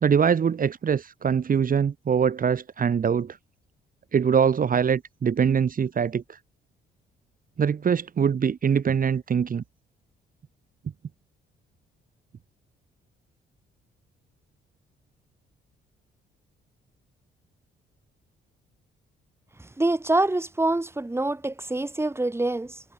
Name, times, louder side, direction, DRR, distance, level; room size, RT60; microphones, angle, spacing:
voice 1, 0.0-3.4 4.1-6.4 7.6-9.6, right 7 dB, 45° right, 2.0 m, -23 dB
voice 2, 19.6-22.8, right 2 dB, 10° right, 3.5 m, -25 dB
cardioid pair, 90°, 20 cm